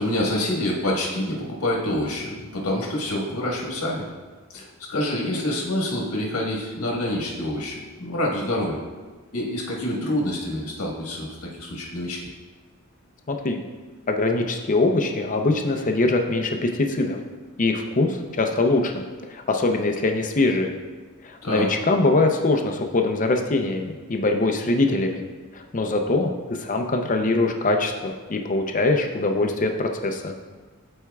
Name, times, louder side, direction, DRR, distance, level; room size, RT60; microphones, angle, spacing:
voice 1, 0.0-4.0 4.5-8.8 9.3-12.3 21.4-21.7, left 1 dB, 90° left, -2 dB, 1.5 m, -27 dB
voice 2, 13.3-13.6 14.1-17.2 17.6-19.0 19.3-20.7 21.2-25.2 25.5-30.3, left 2 dB, 35° left, 4 dB, 0.6 m, -23 dB
13.0 x 4.4 x 2.3 m, 1.3 s
head